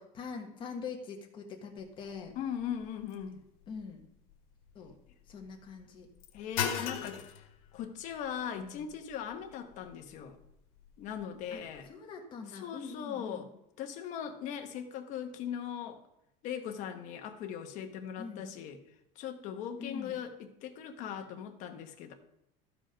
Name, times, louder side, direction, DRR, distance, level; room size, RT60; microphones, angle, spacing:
voice 1, 0.0-2.3 3.7-4.0 4.7-5.0 5.3-6.1 7.0-7.2 8.6-8.9 11.5-13.5 18.2-18.5 19.8-20.2, left 5 dB, 25° left, 2 dB, 1.4 m, -44 dB
sound 1, 1.8-11.9, left 8 dB, 85° left, 1.4 m, -43 dB
voice 2, 2.4-3.4 6.3-7.2 7.7-10.4 11.0-11.9 12.5-13.5 13.8-16.0 16.4-18.8 19.2-20.3 20.6-22.1, left 8 dB, 45° left, 5 dB, 1.1 m, -39 dB
13.0 x 5.0 x 5.1 m, 0.81 s
cardioid pair, 170°, 18 cm